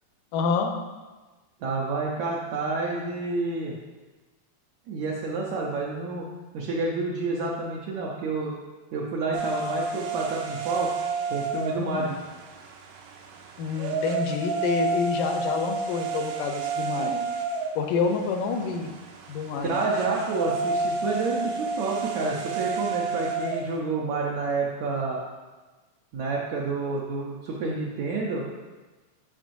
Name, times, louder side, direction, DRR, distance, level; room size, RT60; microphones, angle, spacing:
voice 1, 0.3-0.7 11.7-12.1 13.6-17.2 17.8-18.9 19.3-19.8, left 5 dB, 85° left, 4 dB, 2.2 m, -27 dB
voice 2, 1.6-3.8 4.9-6.3 6.5-8.6 8.9-10.9 11.3-12.1 19.6-25.2 26.1-28.5, right 3 dB, 75° right, -4 dB, 1.8 m, -29 dB
sound 1, 9.3-23.8, right 4 dB, 90° right, 2.3 m, -31 dB
8.9 x 5.4 x 2.6 m, 1.2 s
omnidirectional pair, 3.7 m